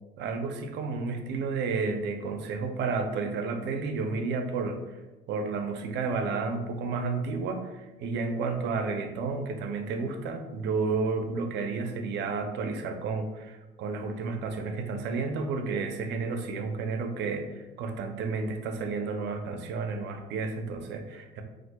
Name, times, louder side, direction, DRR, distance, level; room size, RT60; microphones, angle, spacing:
voice 1, 0.2-5.0 5.3-21.4, right 4 dB, 60° right, 6 dB, 0.5 m, -31 dB
4.2 x 2.4 x 2.2 m, 1.1 s
supercardioid pair, 105°, 21 cm